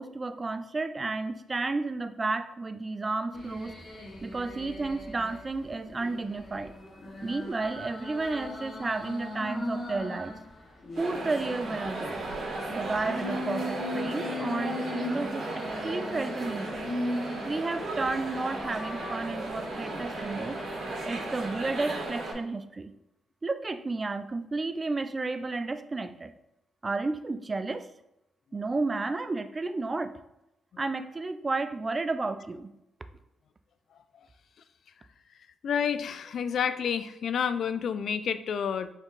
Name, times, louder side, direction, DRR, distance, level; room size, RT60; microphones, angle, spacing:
voice 1, 0.0-3.8 4.2-6.7 7.2-10.3 11.0-12.2 12.7-16.8 17.5-20.6 21.1-22.9 23.4-26.3 26.8-27.9 28.5-30.2 30.8-32.7, right 3 dB, 30° right, 10 dB, 0.4 m, -32 dB
sound 1, 3.3-5.4 5.9-10.4 10.8-17.8 18.3-21.3 21.8-22.1, left 1 dB, 40° left, 1.1 m, -38 dB
sound 2, 11.0-22.3, right 2 dB, 60° right, 1.6 m, -36 dB
voice 2, 35.6-38.9, left 7 dB, 65° left, 12 dB, 0.3 m, -29 dB
4.3 x 2.9 x 3.9 m, 0.86 s
cardioid pair, 70°, 0 cm